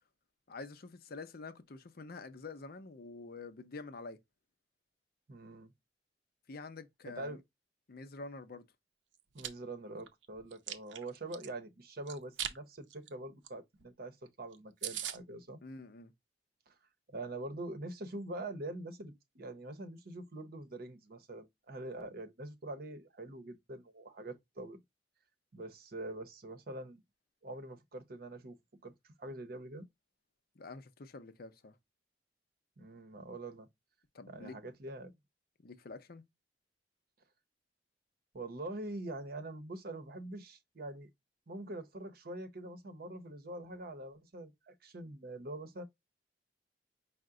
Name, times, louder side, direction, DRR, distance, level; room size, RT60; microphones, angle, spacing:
voice 1, 0.5-4.2 6.5-7.4 7.9-8.6 15.6-16.1 30.6-31.8 34.1-34.6 35.6-36.2, left 3 dB, 55° left, 0.6 m, -47 dB
voice 2, 5.3-5.7 7.0-7.4 9.3-15.6 16.7-16.8 17.1-24.8 25.5-27.0 27.4-29.9 32.8-33.7 34.3-35.1 38.3-41.1 41.5-45.8, right 2 dB, 55° right, 0.8 m, -44 dB
Chewing mastication, 9.1-9.5 10.0-11.5 12.1-12.6 12.9-13.1 13.4-13.5 13.8-13.9 14.3-14.4 14.5-14.6 14.8-15.2, right 10 dB, 90° right, 0.6 m, -39 dB
5.7 x 2.1 x 3.6 m
head